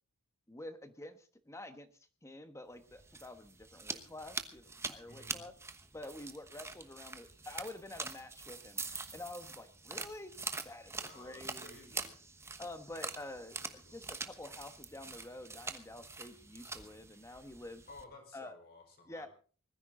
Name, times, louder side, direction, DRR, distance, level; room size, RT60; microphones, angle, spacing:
voice 1, 0.5-1.9 2.2-5.5 5.9-8.8 9.1-10.3 10.6-12.0 12.6-17.8 18.3-18.5 19.1-19.3, left 1 dB, 15° left, 9 dB, 1.2 m, -48 dB
sound 1, 2.8-18.0, right 3 dB, 10° right, 1.1 m, -45 dB
voice 2, 5.0-5.4 10.9-12.2 13.6-14.0 17.9-19.3, left 2 dB, 45° left, 4 dB, 4.7 m, -55 dB
20.5 x 14.0 x 3.8 m, 0.39 s
head